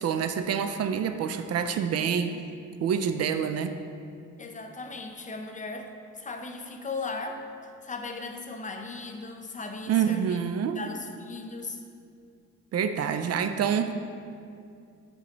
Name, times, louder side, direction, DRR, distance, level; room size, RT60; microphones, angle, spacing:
voice 1, 0.0-2.4 2.8-3.8 9.9-10.8 12.7-13.9, right 7 dB, 55° right, 9 dB, 0.4 m, -27 dB
voice 2, 4.4-10.4 10.7-11.8, left 3 dB, 25° left, 4 dB, 0.6 m, -37 dB
8.4 x 5.3 x 3.0 m, 2.4 s
cardioid pair, 90°, 30 cm